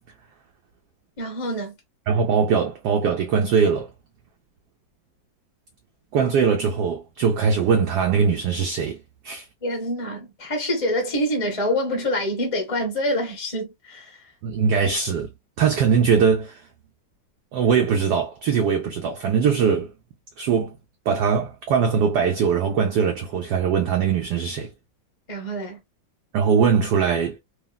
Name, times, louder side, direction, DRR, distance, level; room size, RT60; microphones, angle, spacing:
voice 1, 1.2-1.7 9.6-14.2 25.3-25.8, equal, 30° left, 0.6 m, -26 dB
voice 2, 2.1-3.9 6.1-9.5 14.4-15.3 15.6-16.7 17.5-19.9 20.4-20.8 21.1-24.7 26.3-27.4, right 6 dB, 75° right, 1.0 m, -21 dB
3.1 x 2.4 x 2.3 m
omnidirectional pair, 2.1 m